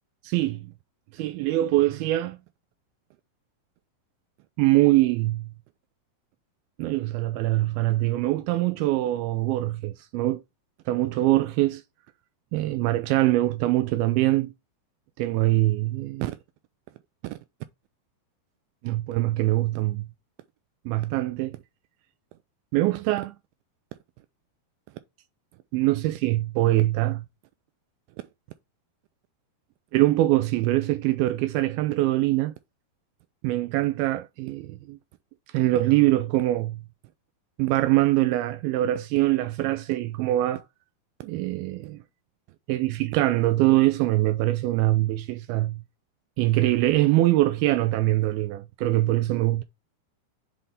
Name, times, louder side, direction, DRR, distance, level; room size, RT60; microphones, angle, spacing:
voice 1, 0.2-0.7 1.1-2.4 4.6-5.5 6.8-10.4 10.9-11.8 12.5-14.5 15.2-16.4 17.2-17.4 18.8-20.1 20.9-21.6 22.7-23.3 25.7-27.3 29.9-32.5 33.4-35.0 35.5-36.8 37.6-40.6 41.2-42.0 42.7-45.8 46.4-49.6, right 16 dB, 80° right, 2.3 m, -23 dB
7.8 x 4.0 x 3.4 m
omnidirectional pair, 4.5 m